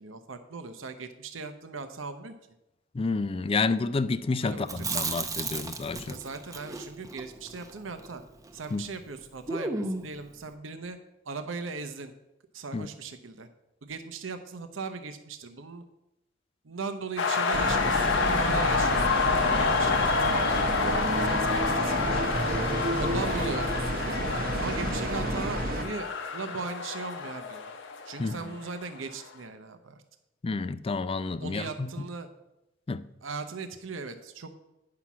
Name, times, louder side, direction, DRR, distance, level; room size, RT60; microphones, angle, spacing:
voice 1, 0.0-2.4 4.4-5.1 6.0-8.2 8.5-11.0 11.2-12.1 12.5-13.5 13.8-15.8 16.6-22.2 22.9-24.2 24.6-27.6 28.0-30.0 31.4-32.3 33.2-34.5, right 4 dB, 75° right, 0.8 m, -38 dB
voice 2, 2.9-6.2 8.7-8.8 12.7-12.9 28.2-28.4 30.4-31.9 32.9-33.0, left 3 dB, 30° left, 0.4 m, -29 dB
Chewing mastication, 4.6-8.8 9.0-9.1 9.5-10.2, right 3 dB, 20° right, 0.7 m, -35 dB
sound 1, 17.2-28.9, left 4 dB, 65° left, 0.8 m, -28 dB
sound 2, 17.5-25.8, right 1 dB, 50° right, 0.9 m, -30 dB
9.6 x 5.8 x 6.0 m
head